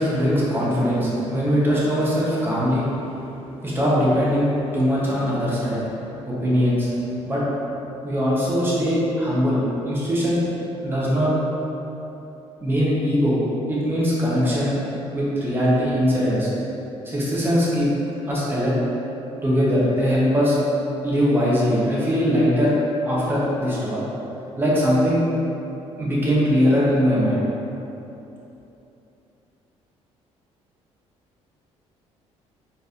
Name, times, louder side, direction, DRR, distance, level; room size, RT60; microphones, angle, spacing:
voice 1, 0.0-2.9 3.6-5.8 6.3-6.9 7.3-7.4 8.0-10.4 10.8-11.3 12.6-13.4 13.7-14.8 15.1-16.5 17.0-17.9 18.3-18.7 19.4-20.6 21.0-24.0 24.6-25.2 26.0-27.4, equal, 20° right, -7 dB, 1.1 m, -21 dB
4.5 x 3.4 x 2.7 m, 3.0 s
cardioid pair, 115°, 12 cm